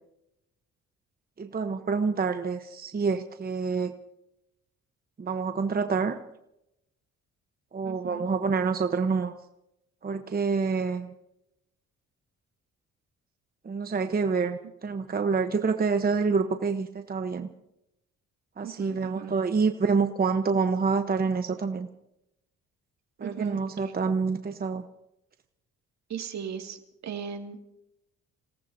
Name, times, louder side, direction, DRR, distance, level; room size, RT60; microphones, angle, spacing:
voice 1, 1.4-3.9 5.2-6.2 7.7-9.3 10.0-11.1 13.6-17.5 18.6-21.9 23.2-24.8, right 5 dB, 30° right, 7 dB, 1.0 m, -27 dB
voice 2, 7.8-8.2 18.6-19.3 23.2-23.9 26.1-26.8 27.0-27.7, right 7 dB, 65° right, 4 dB, 2.3 m, -38 dB
29.0 x 18.0 x 2.8 m, 0.85 s
cardioid pair, 90°, 30 cm